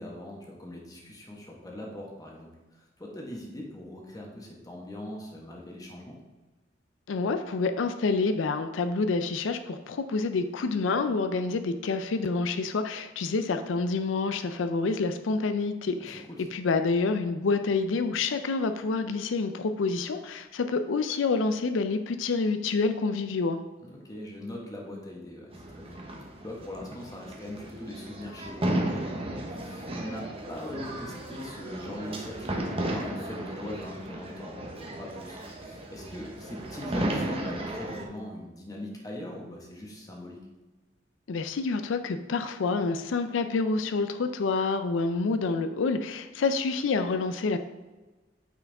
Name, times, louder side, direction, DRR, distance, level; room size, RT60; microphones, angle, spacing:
voice 1, 0.0-6.2 16.0-16.4 23.8-26.0 26.4-40.4, left 1 dB, 20° left, -1 dB, 1.4 m, -41 dB
voice 2, 7.1-16.2 16.5-23.6 41.3-47.6, left 4 dB, 90° left, 8 dB, 0.4 m, -28 dB
sound 1, 25.5-38.0, right 1 dB, 30° right, 1.0 m, -35 dB
8.9 x 4.7 x 3.5 m, 1.2 s
head